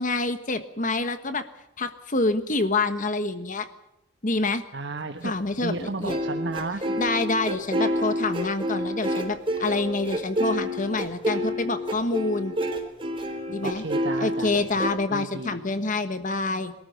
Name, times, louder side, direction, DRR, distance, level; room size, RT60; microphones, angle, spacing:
voice 1, 0.0-1.4 1.8-3.7 4.2-4.6 5.2-6.2 7.0-12.5 13.5-13.8 14.2-16.7, left 3 dB, 45° left, 10 dB, 1.4 m, -27 dB
voice 2, 4.7-7.0 13.6-15.6, right 3 dB, 60° right, 5 dB, 1.3 m, -34 dB
sound 1, 6.0-14.9, equal, 25° right, 3.8 m, -28 dB
23.5 x 13.5 x 9.3 m, 0.90 s
head